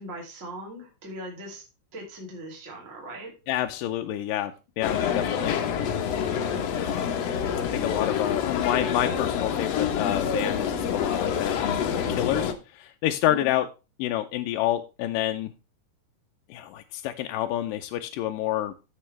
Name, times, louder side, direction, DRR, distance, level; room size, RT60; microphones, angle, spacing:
voice 1, 0.0-1.6 1.9-3.3 13.3-13.5, right 1 dB, 25° right, -2 dB, 2.9 m, -40 dB
voice 2, 3.5-5.5 7.6-13.7 14.0-15.5 16.5-18.8, left 13 dB, 85° left, 5 dB, 2.3 m, -28 dB
sound 1, 4.8-12.5, left 7 dB, 65° left, 1.8 m, -27 dB
15.0 x 5.4 x 3.3 m, 0.30 s
omnidirectional pair, 3.9 m